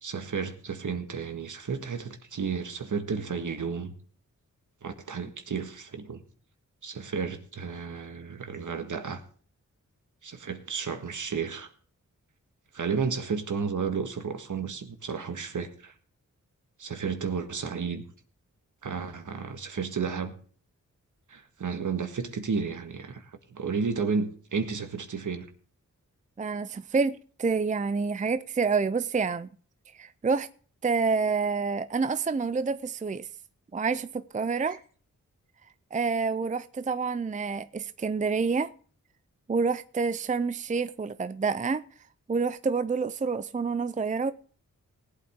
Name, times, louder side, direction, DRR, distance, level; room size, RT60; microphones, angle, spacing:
voice 1, 0.0-3.9 4.8-6.2 6.8-9.2 10.2-11.7 12.7-15.9 16.8-18.0 18.8-20.3 21.3-23.2 23.5-25.5 34.7-34.8, right 5 dB, 65° right, 1.7 m, -32 dB
voice 2, 26.4-29.5 29.9-30.5 30.8-33.3 33.7-34.8 35.9-38.7 39.5-41.8 42.3-44.3, right 4 dB, 25° right, 0.5 m, -28 dB
18.5 x 8.5 x 3.6 m
cardioid pair, 55°, 33 cm